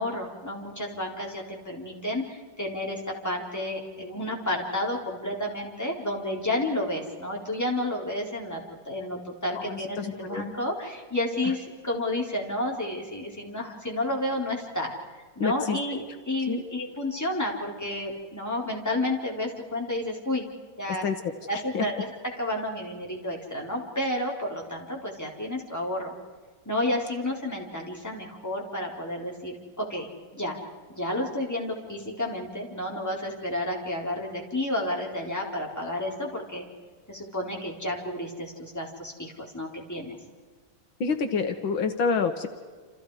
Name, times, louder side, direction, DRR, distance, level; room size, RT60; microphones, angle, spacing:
voice 1, 0.0-14.9 15.4-20.5 20.8-21.0 21.5-22.1 22.4-26.1 26.7-30.1 30.3-30.6 30.9-36.7 37.1-40.2, left 1 dB, 10° left, -1 dB, 4.0 m, -31 dB
voice 2, 9.5-10.5 15.4-15.8 16.5-16.7 20.9-21.9 41.0-42.5, left 5 dB, 75° left, 7 dB, 2.1 m, -28 dB
29.0 x 28.0 x 4.9 m, 1.5 s
omnidirectional pair, 2.2 m